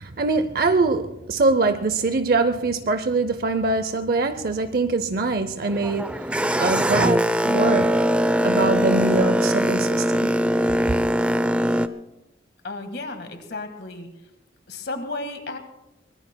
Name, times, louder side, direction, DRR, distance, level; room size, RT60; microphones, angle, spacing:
voice 1, 0.0-6.2 6.6-7.9 8.4-10.3, right 3 dB, 50° right, 0.6 m, -23 dB
Boat Water vehicle, 5.7-11.9, equal, 5° right, 0.4 m, -21 dB
voice 2, 12.6-14.1 14.7-15.6, left 2 dB, 60° left, 1.7 m, -33 dB
24.0 x 20.5 x 2.2 m
head